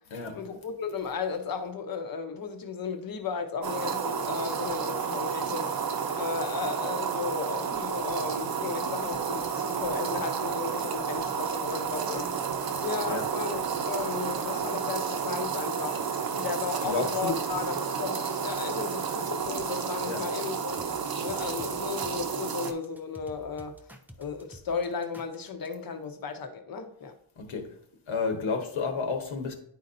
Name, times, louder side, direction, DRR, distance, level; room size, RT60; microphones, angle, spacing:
voice 1, 0.3-5.7 6.2-12.3 12.8-20.8 21.2-23.8 24.2-27.1, left 5 dB, 50° left, 0.8 m, -35 dB
sound 1, 3.6-22.7, right 6 dB, 50° right, 0.7 m, -31 dB
voice 2, 16.8-17.4 20.0-20.2 27.4-27.7 28.1-29.5, left 4 dB, 85° left, 1.3 m, -31 dB
sound 2, 20.8-25.7, equal, 5° right, 0.3 m, -50 dB
10.5 x 4.2 x 2.6 m
wide cardioid pair, 175°, 47 cm